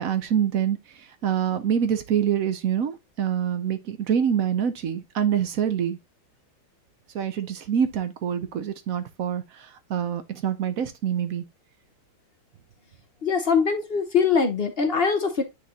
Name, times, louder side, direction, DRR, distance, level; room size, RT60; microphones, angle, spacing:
voice 1, 0.0-6.0 7.1-11.4, right 8 dB, 60° right, 0.9 m, -26 dB
voice 2, 13.2-15.4, left 5 dB, 55° left, 0.6 m, -22 dB
9.3 x 3.8 x 2.8 m
omnidirectional pair, 2.2 m